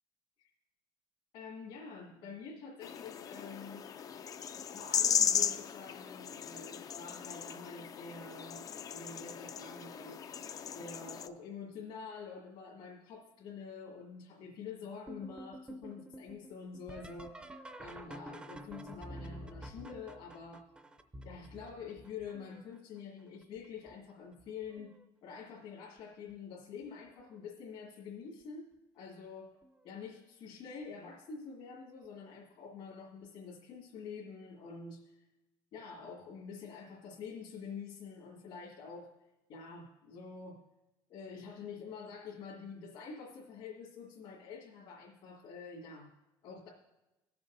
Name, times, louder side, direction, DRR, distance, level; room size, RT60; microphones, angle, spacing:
voice 1, 1.3-3.9 4.5-10.2 10.7-17.4 17.8-20.7 21.2-24.9 25.2-28.7 28.9-29.5 29.8-35.2 35.7-39.1 39.5-40.6 41.1-46.1 46.4-46.7, left 5 dB, 70° left, -5 dB, 2.0 m, -47 dB
sound 1, 2.8-11.3, left 8 dB, 40° left, 0.4 m, -36 dB
sound 2, 15.1-22.8 23.4-23.9 24.4-25.0 26.3-26.4 27.1-27.5 29.6-29.7 32.0-32.1, right 1 dB, 10° right, 0.5 m, -49 dB
18.5 x 7.0 x 2.6 m, 1.0 s
cardioid pair, 120°, 10 cm